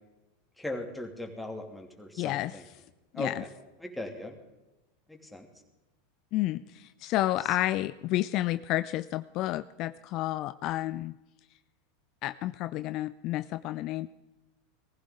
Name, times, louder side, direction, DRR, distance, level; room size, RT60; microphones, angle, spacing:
voice 1, 0.6-2.6 3.1-3.5 3.8-4.4 5.1-5.5, left 1 dB, 5° left, 2 dB, 2.7 m, -38 dB
voice 2, 2.2-2.8 3.1-3.4 6.3-11.1 12.2-14.1, left 15 dB, 50° left, 14 dB, 0.4 m, -31 dB
19.5 x 15.0 x 3.8 m, 1.0 s
hypercardioid pair, 90°, 0 cm